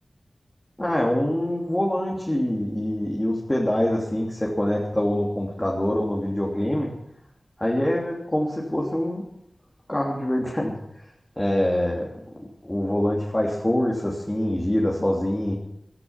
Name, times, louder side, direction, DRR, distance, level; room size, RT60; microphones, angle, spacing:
voice 1, 0.8-6.9 7.6-9.2 9.9-10.7 11.4-15.5, left 1 dB, 15° left, -3 dB, 3.2 m, -25 dB
15.5 x 13.5 x 5.9 m, 0.77 s
wide cardioid pair, 75°, 0 cm